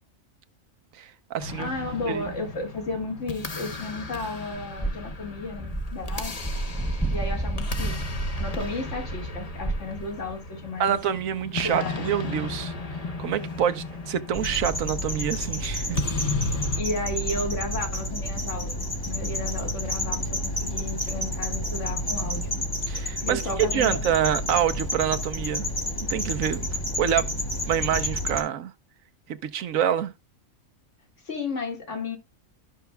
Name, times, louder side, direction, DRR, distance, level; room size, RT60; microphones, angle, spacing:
voice 1, 1.0-1.7 2.1-2.3 10.8-12.7 13.2-16.0 22.9-25.7 26.1-26.7 27.0-27.3 27.7-28.7 29.4-30.1, right 9 dB, 85° right, 1.2 m, -26 dB
sound 1, 1.4-16.8, left 3 dB, 35° left, 0.9 m, -35 dB
voice 2, 1.6-6.3 7.1-8.0 8.4-11.0 11.6-12.4 16.8-18.8 19.0-22.5 23.2-24.0 31.2-32.2, left 2 dB, 65° left, 2.3 m, -33 dB
sound 2, 4.8-10.3, right 2 dB, ahead, 0.4 m, -30 dB
sound 3, 14.3-28.4, left 1 dB, 15° left, 1.3 m, -30 dB
13.5 x 5.7 x 2.2 m
omnidirectional pair, 1.4 m